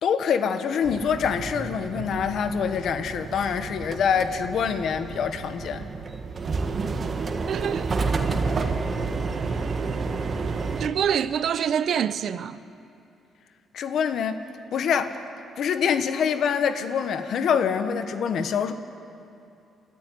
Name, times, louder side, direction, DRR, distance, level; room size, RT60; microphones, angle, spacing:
voice 1, 0.0-5.8 13.7-14.3 14.7-15.1 15.6-18.7, left 7 dB, 70° left, 1.4 m, -25 dB
sound 1, 0.8-10.9, right 4 dB, 40° right, 1.7 m, -30 dB
voice 2, 7.5-7.9 10.8-12.6, right 8 dB, 65° right, 0.8 m, -25 dB
28.0 x 13.0 x 9.3 m
cardioid pair, 90°, 0 cm